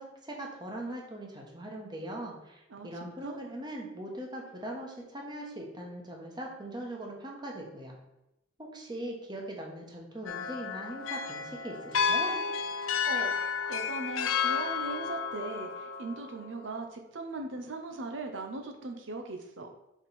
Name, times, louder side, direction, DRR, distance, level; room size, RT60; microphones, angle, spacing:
voice 1, 0.0-8.0 8.6-12.4, right 1 dB, 20° right, 0 dB, 1.1 m, -40 dB
voice 2, 2.7-3.4 12.8-13.4 13.7-19.7, right 3 dB, 75° right, 4 dB, 0.7 m, -39 dB
sound 1, 10.3-16.5, left 6 dB, 85° left, 0.5 m, -32 dB
5.3 x 5.1 x 4.1 m, 0.90 s
head